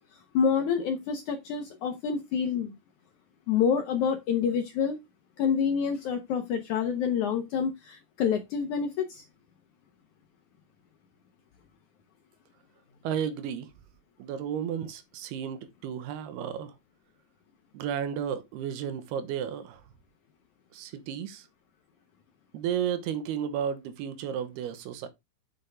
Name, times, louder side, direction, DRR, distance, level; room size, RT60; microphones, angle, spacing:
voice 1, 0.1-2.8 3.5-5.0 5.4-9.2, left 7 dB, 70° left, 1.9 m, -27 dB
voice 2, 13.0-13.7 14.2-16.8 17.7-19.8 20.7-21.5 22.5-25.1, right 8 dB, 85° right, 2.9 m, -33 dB
8.3 x 6.7 x 3.4 m
omnidirectional pair, 4.6 m